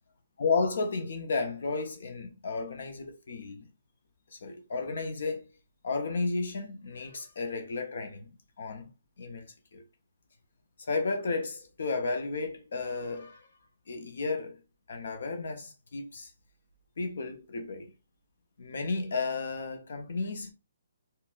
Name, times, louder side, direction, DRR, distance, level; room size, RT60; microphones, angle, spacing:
voice 1, 0.4-3.7 4.4-5.5 5.8-8.3 8.6-8.9 9.2-9.5 9.7-9.8 10.9-13.5 13.9-14.6 14.9-16.3 17.0-17.9 18.6-20.5, left 4 dB, 50° left, 0.6 m, -33 dB
4.0 x 2.0 x 2.4 m
hypercardioid pair, 180°, 0 cm